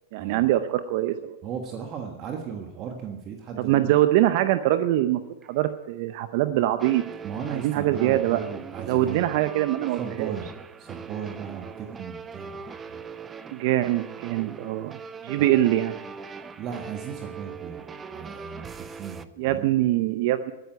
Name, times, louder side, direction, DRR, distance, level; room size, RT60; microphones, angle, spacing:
voice 1, 0.1-1.4 3.6-7.0 7.5-8.4 8.9-10.3 13.5-15.0 15.2-16.0 19.4-20.5, right 14 dB, 55° right, 11 dB, 0.6 m, -23 dB
voice 2, 1.4-3.9 7.2-9.4 10.0-10.5 10.8-13.0 15.4-15.5 16.6-19.7, right 7 dB, 40° right, 4 dB, 1.5 m, -36 dB
sound 1, 5.4-5.5 6.8-19.2, right 5 dB, 20° right, 0.7 m, -41 dB
11.5 x 9.3 x 8.9 m, 1.0 s
hypercardioid pair, 105°, 0 cm